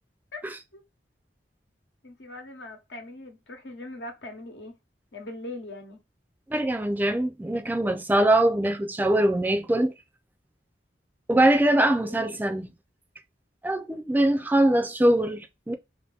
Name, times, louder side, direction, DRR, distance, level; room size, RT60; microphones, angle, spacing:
voice 1, 2.0-4.7 5.1-6.0 11.7-11.8 12.0-12.4, left 2 dB, 85° left, 1.0 m, -41 dB
voice 2, 6.5-9.9 11.3-12.8 13.6-15.7, right 1 dB, 10° right, 0.3 m, -22 dB
2.7 x 2.6 x 3.3 m
head